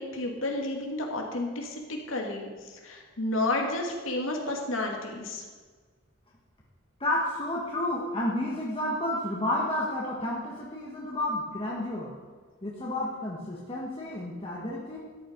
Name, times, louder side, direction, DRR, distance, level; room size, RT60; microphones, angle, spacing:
voice 1, 0.0-2.5 2.8-5.4, left 2 dB, 75° left, 1 dB, 2.6 m, -31 dB
voice 2, 7.0-12.1 12.6-15.0, left 1 dB, 30° left, -4 dB, 1.7 m, -31 dB
13.0 x 11.0 x 5.4 m, 1.4 s
head